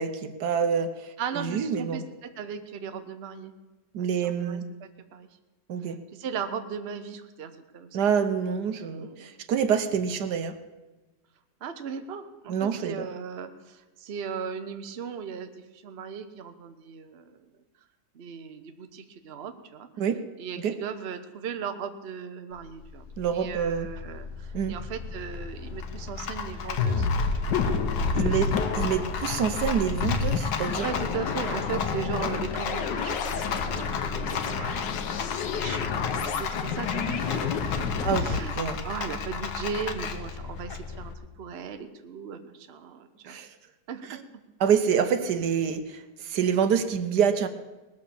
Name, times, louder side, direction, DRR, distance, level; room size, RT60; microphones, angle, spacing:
voice 1, 0.0-2.0 3.9-4.6 5.7-6.0 7.9-10.5 12.5-13.1 20.0-20.2 20.6-20.8 23.2-23.9 24.5-24.7 28.1-30.9 38.0-38.8 43.3-43.5 44.1-44.2 44.6-47.5, right 7 dB, 75° right, 10 dB, 1.4 m, -27 dB
voice 2, 1.2-3.5 4.0-5.3 6.1-8.1 9.0-9.3 11.6-17.5 18.1-19.9 20.4-23.0 23.3-27.1 27.4-28.5 30.8-37.4 37.8-43.4 43.9-44.2, right 6 dB, 45° right, 8 dB, 0.9 m, -37 dB
Rattle, 22.5-41.1, left 6 dB, 70° left, 1.6 m, -35 dB
sound 1, 26.8-38.4, left 5 dB, 90° left, 1.6 m, -29 dB
19.5 x 6.7 x 7.0 m, 1.1 s
omnidirectional pair, 1.8 m